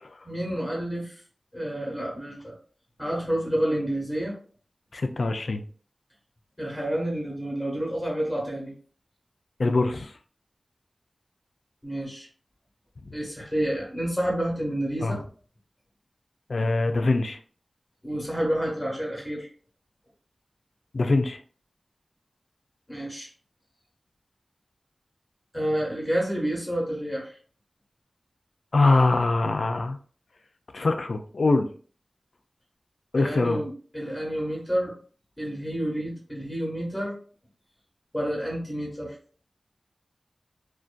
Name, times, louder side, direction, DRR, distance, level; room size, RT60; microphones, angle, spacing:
voice 1, 0.2-1.2 1.5-2.5 3.0-4.4 6.6-8.7 11.8-12.3 13.1-15.2 18.0-19.5 22.9-23.3 25.5-27.4 33.2-34.9 35.4-37.2 38.1-39.2, right 1 dB, 10° left, -3 dB, 0.9 m, -29 dB
voice 2, 4.9-5.6 9.6-10.1 15.0-15.2 16.5-17.4 20.9-21.4 28.7-30.0 30.7-31.7 33.1-33.6, left 3 dB, 70° left, 7 dB, 0.3 m, -23 dB
2.5 x 2.2 x 2.4 m, 0.43 s
wide cardioid pair, 65°, 0 cm